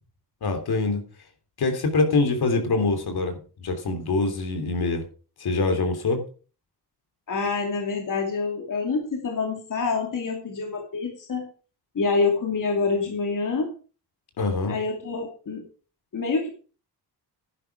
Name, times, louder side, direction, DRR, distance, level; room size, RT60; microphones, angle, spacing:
voice 1, 0.4-1.0 1.6-5.0 5.4-6.2 14.4-14.8, left 3 dB, 65° left, 6 dB, 3.3 m, -24 dB
voice 2, 7.3-11.5 11.9-13.7 14.7-15.6 16.1-16.5, left 4 dB, 50° left, 2 dB, 2.7 m, -26 dB
11.0 x 11.0 x 4.8 m, 0.37 s
cardioid pair, 105°, 40 cm